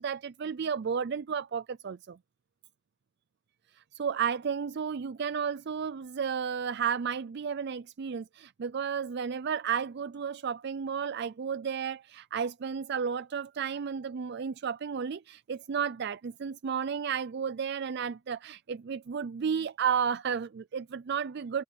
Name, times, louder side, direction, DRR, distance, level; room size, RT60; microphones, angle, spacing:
voice 1, 0.0-2.2 3.9-21.6, right 7 dB, 50° right, 0.4 m, -32 dB
open air
head